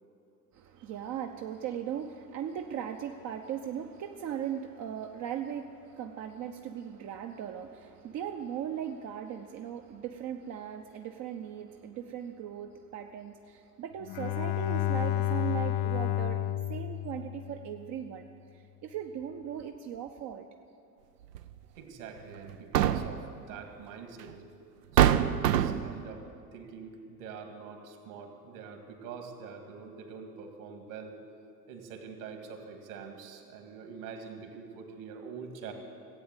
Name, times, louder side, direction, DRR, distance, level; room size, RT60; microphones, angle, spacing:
voice 1, 0.5-16.4 16.7-18.3 18.5-20.5, right 9 dB, 35° right, 4 dB, 0.7 m, -38 dB
Bowed string instrument, 14.0-17.8, left 12 dB, 30° left, 0.4 m, -31 dB
sound 1, 21.3-21.5 22.5-23.3 24.3-24.4 25.0-26.0, right 11 dB, 75° right, 0.7 m, -24 dB
voice 2, 21.8-24.3 24.9-26.3 26.5-31.2 31.7-35.7, right 5 dB, 55° right, 4 dB, 2.2 m, -45 dB
16.0 x 8.6 x 8.3 m, 2.5 s
figure-of-eight pair, 70°, 48 cm